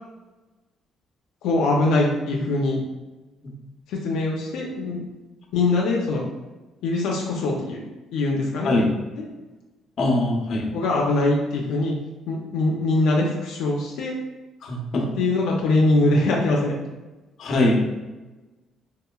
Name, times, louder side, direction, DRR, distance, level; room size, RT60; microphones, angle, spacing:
voice 1, 1.4-2.8 3.9-5.0 5.5-6.2 6.8-7.8 8.1-8.7 9.1-9.3 10.7-11.9 12.3-14.1 15.2-16.7, left 2 dB, 85° left, -2 dB, 0.4 m, -22 dB
voice 2, 8.6-9.0 10.0-10.7 14.6-15.0 17.4-17.8, left 2 dB, 55° left, 0 dB, 0.7 m, -21 dB
3.7 x 2.8 x 2.3 m, 1.1 s
cardioid pair, 115°, 0 cm